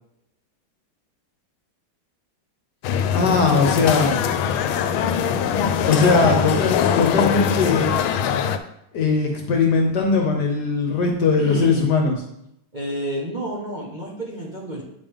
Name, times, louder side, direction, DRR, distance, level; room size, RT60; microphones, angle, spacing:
sound 1, 2.8-8.6, left 8 dB, 80° left, 1.4 m, -22 dB
voice 1, 3.1-4.2 5.8-7.9 8.9-12.2, left 4 dB, 60° left, 3 dB, 1.4 m, -20 dB
voice 2, 6.0-6.4 11.4-11.9 12.7-14.8, right 1 dB, 25° right, -3 dB, 1.2 m, -29 dB
9.0 x 5.3 x 3.5 m, 0.77 s
omnidirectional pair, 2.2 m